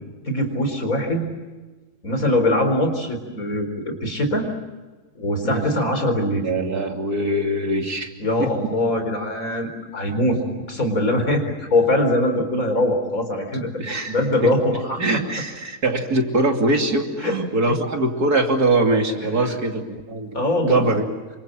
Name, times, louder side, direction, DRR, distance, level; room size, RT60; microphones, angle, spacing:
voice 1, 0.3-1.3 2.0-4.5 5.1-6.5 8.2-10.4 10.7-13.7 14.1-15.0 17.2-17.3 19.4-19.6 20.3-20.9, left 1 dB, 60° left, 5 dB, 4.7 m, -22 dB
voice 2, 6.4-8.1 8.4-8.5 13.6-14.2 14.4-14.5 15.0-21.1, right 2 dB, 70° right, 3 dB, 3.3 m, -22 dB
28.0 x 25.5 x 7.6 m, 1.3 s
omnidirectional pair, 1.7 m